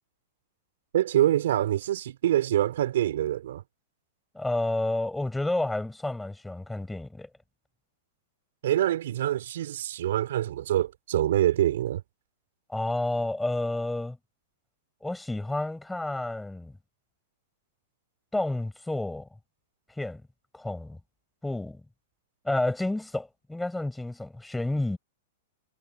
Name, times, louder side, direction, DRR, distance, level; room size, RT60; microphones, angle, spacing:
voice 1, 0.9-3.6 8.6-12.0, right 12 dB, 70° right, 3.7 m, -25 dB
voice 2, 4.3-7.3 12.7-14.2 15.0-16.8 18.3-19.3 20.0-20.2 20.5-21.0 21.4-21.8 22.4-25.0, left 2 dB, 5° left, 7.1 m, -30 dB
hypercardioid pair, 130°, 0 cm